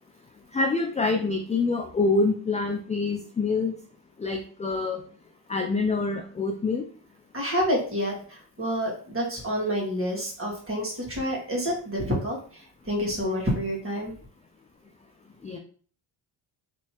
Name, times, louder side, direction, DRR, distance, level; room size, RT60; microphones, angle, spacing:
voice 1, 0.5-3.8 4.2-5.0 5.5-6.8 15.4-15.6, left 3 dB, 15° left, 4 dB, 0.3 m, -26 dB
voice 2, 7.3-14.1, equal, 25° right, -2 dB, 1.8 m, -28 dB
3.3 x 2.9 x 2.9 m, 0.44 s
supercardioid pair, 65°, 49 cm